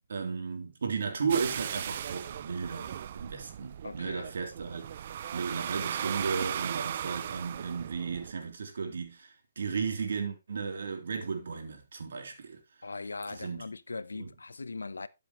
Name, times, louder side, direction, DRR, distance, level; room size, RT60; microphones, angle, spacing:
voice 1, 0.1-4.8 5.3-12.6 13.3-13.6 14.2-14.3, right 5 dB, 70° right, 3.5 m, -34 dB
sound 1, 1.3-8.3, right 9 dB, 50° right, 0.5 m, -37 dB
voice 2, 3.8-4.3 12.8-15.1, left 3 dB, 90° left, 0.8 m, -40 dB
12.5 x 7.8 x 3.2 m
hypercardioid pair, 145°, 0 cm